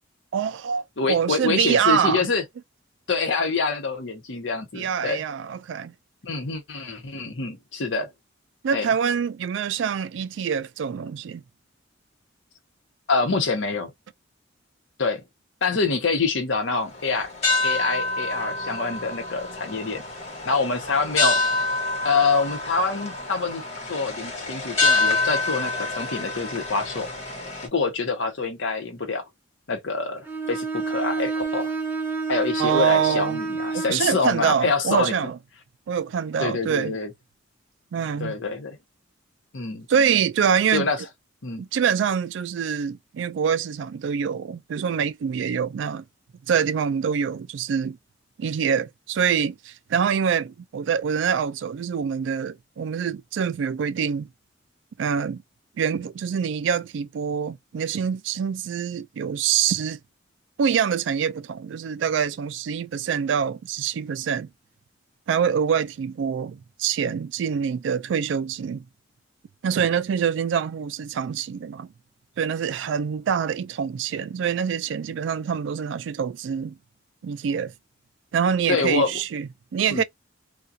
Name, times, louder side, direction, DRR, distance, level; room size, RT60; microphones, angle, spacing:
voice 1, 0.3-2.2 4.7-5.9 8.6-11.4 32.6-33.4 33.7-35.4 35.9-37.0 37.9-38.4 39.9-40.9 41.6-46.0 46.5-48.0 48.4-54.3 55.0-55.4 55.8-60.0 60.6-64.5 65.3-68.8 69.6-71.9 72.4-76.8 77.2-77.7 78.3-80.0, right 7 dB, 70° right, 0.3 m, -25 dB
voice 2, 1.0-2.4 3.1-5.2 6.2-8.1 8.7-8.9 13.1-13.9 15.0-15.2 15.6-17.3 17.6-20.0 20.5-21.4 22.0-23.6 23.9-27.1 27.7-29.2 29.7-31.7 32.3-35.1 36.4-37.1 38.2-38.8 39.5-39.9 40.7-41.0 41.4-41.6 78.7-79.1 79.9-80.0, left 4 dB, 70° left, 0.8 m, -26 dB
sound 1, 16.8-27.7, left 3 dB, 35° left, 1.2 m, -27 dB
Bowed string instrument, 30.2-34.0, right 4 dB, 10° right, 0.6 m, -28 dB
2.4 x 2.3 x 2.6 m
head